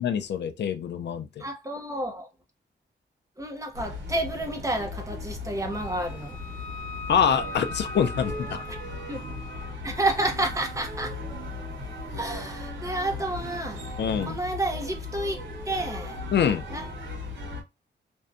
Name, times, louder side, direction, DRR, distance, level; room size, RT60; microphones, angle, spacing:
voice 1, 0.0-1.4 7.1-8.6 14.0-14.4 16.3-16.6, left 7 dB, 65° left, 0.4 m, -25 dB
voice 2, 1.4-2.3 3.4-6.4 8.7-8.8 9.1-9.2 9.8-11.2 12.1-14.0 14.3-16.2 16.7-16.9, right 1 dB, 15° right, 0.7 m, -30 dB
sound 1, 3.7-17.6, left 2 dB, 80° right, 1.0 m, -37 dB
Wind instrument woodwind instrument, 5.7-9.7, left 2 dB, 30° left, 1.0 m, -40 dB
2.6 x 2.1 x 2.3 m
wide cardioid pair, 130°, 19 cm